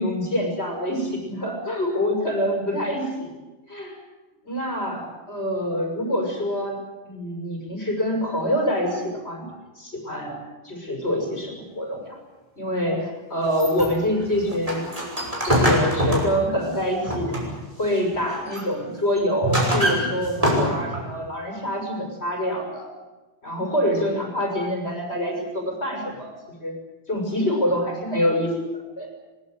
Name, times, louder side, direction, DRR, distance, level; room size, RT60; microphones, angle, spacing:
voice 1, 0.0-3.3 3.7-3.9 4.4-6.8 7.0-9.5 9.8-10.4 10.6-12.2 12.6-14.9 15.5-17.4 17.8-22.9 23.4-26.3 26.6-26.8 27.1-29.1, equal, 85° left, 2 dB, 6.5 m, -26 dB
sound 1, 13.5-17.7 18.1-18.7 19.2-21.1, equal, 35° right, 6.2 m, -24 dB
22.5 x 21.5 x 8.2 m, 1.2 s
omnidirectional pair, 1.1 m